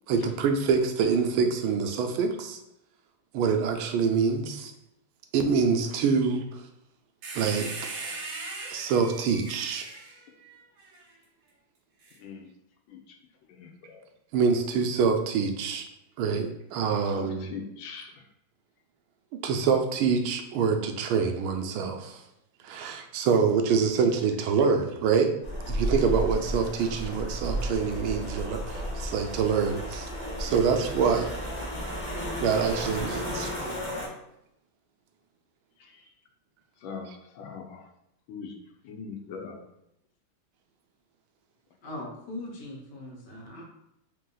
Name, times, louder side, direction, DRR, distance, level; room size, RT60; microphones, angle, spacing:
voice 1, 0.1-2.6 3.3-4.7 5.3-6.6 7.3-7.7 8.7-9.9 14.3-15.9 16.2-17.6 19.4-22.2 22.6-25.3 25.7-30.1 30.4-31.3 32.4-33.5 37.1-37.2, right 5 dB, 90° right, 5 dB, 1.4 m, -25 dB
sound 1, 7.2-11.0 12.0-12.2, right 3 dB, 70° right, 1.6 m, -39 dB
voice 2, 13.6-14.0 17.2-18.1 36.8-37.8 38.3-38.5 38.8-39.6, left 5 dB, 80° left, 3 dB, 1.4 m, -41 dB
sound 2, 25.4-34.1, equal, 35° left, 0.7 m, -33 dB
voice 3, 41.8-43.6, left 1 dB, 60° left, -2 dB, 1.6 m, -40 dB
3.7 x 2.8 x 3.8 m, 0.82 s
omnidirectional pair, 2.2 m